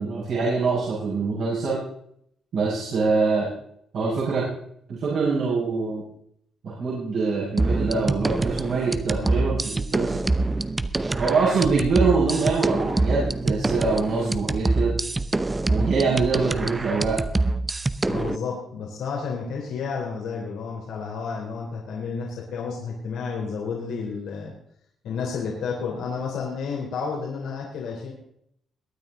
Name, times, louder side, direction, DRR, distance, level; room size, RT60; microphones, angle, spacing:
voice 1, 0.0-1.8 2.5-3.5 3.9-4.4 4.9-6.0 6.6-10.2 11.1-14.9 15.7-17.2, right 4 dB, 70° right, -8 dB, 5.9 m, -24 dB
sound 1, 7.6-18.4, right 2 dB, 20° right, 0.8 m, -25 dB
voice 2, 9.1-9.5 18.1-24.5 25.0-28.1, left 5 dB, 80° left, -2 dB, 3.6 m, -31 dB
22.0 x 9.4 x 3.9 m, 0.70 s
cardioid pair, 90°, 0 cm